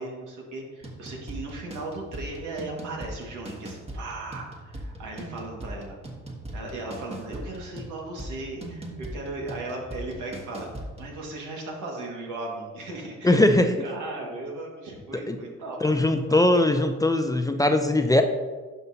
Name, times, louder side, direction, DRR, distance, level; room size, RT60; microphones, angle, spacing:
voice 1, 0.0-6.0 6.5-16.5, right 2 dB, 85° right, -1 dB, 1.9 m, -37 dB
sound 1, 0.8-11.2, right 1 dB, 20° right, 1.3 m, -40 dB
voice 2, 13.2-13.7 15.3-15.4 15.8-18.2, left 1 dB, 10° left, 6 dB, 0.5 m, -20 dB
11.0 x 5.5 x 2.8 m, 1.3 s
cardioid pair, 90°, 30 cm